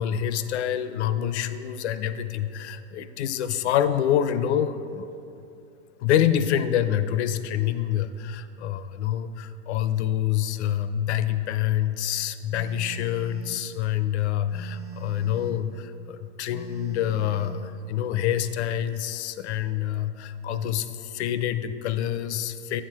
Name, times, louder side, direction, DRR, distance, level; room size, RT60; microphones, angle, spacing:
voice 1, 0.0-5.1 6.0-22.8, left 10 dB, 80° left, 12 dB, 0.6 m, -26 dB
Telephone, 12.5-13.6 14.5-15.6 16.5-17.6, right 4 dB, 20° right, 1.4 m, -42 dB
8.2 x 5.8 x 4.7 m, 2.7 s
supercardioid pair, 140°, 33 cm